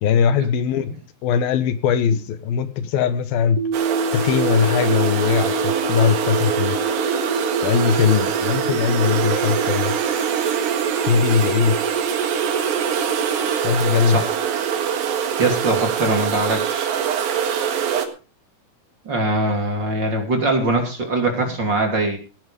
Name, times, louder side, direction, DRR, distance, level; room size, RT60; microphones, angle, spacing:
voice 1, 0.0-0.9 1.2-3.6 4.1-6.8 7.6-9.9 11.0-11.8 13.6-14.2, left 7 dB, 85° left, 12 dB, 3.0 m, -20 dB
sound 1, 3.6-13.6, right 5 dB, 65° right, 3.2 m, -26 dB
sound 2, 3.7-18.1, right 8 dB, 90° right, 3.5 m, -24 dB
voice 2, 15.0-16.9 19.0-22.2, right 2 dB, 30° right, 3 dB, 3.2 m, -22 dB
16.5 x 10.0 x 5.2 m, 0.35 s
omnidirectional pair, 4.1 m